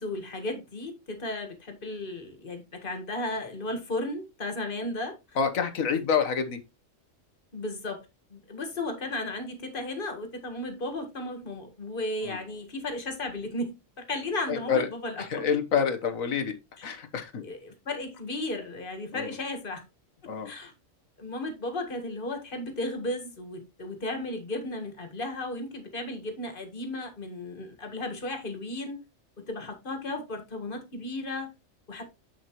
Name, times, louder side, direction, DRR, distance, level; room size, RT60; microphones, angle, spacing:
voice 1, 0.0-5.2 7.5-15.5 16.8-17.0 17.4-19.8 20.4-20.7 21.2-29.0 29.4-31.5 31.9-32.0, left 2 dB, 40° left, 1.9 m, -35 dB
voice 2, 5.4-6.6 12.2-12.4 14.5-14.9 15.2-16.5 16.8-17.4 19.1-19.3 20.3-20.5, left 6 dB, 90° left, 1.6 m, -27 dB
7.7 x 7.1 x 3.0 m
omnidirectional pair, 1.4 m